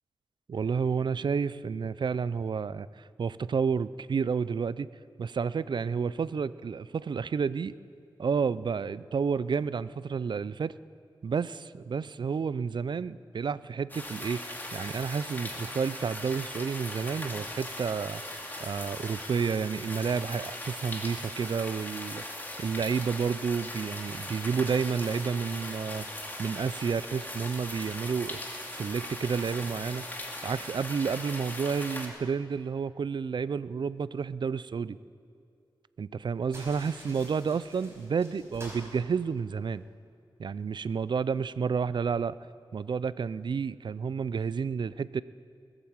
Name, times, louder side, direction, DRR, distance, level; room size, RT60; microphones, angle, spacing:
voice 1, 0.5-4.9 5.2-7.7 8.2-10.7 11.2-18.2 18.6-22.2 22.6-26.1 26.4-28.4 28.7-30.0 30.4-35.0 36.0-39.8 40.4-42.4 42.7-45.2, right 6 dB, 60° right, 17 dB, 0.4 m, -30 dB
sound 1, 13.9-32.1, left 1 dB, 20° left, 2.3 m, -39 dB
sound 2, 36.5-39.9, equal, 30° right, 4.9 m, -49 dB
20.0 x 8.9 x 7.3 m, 2.4 s
wide cardioid pair, 75°, 9 cm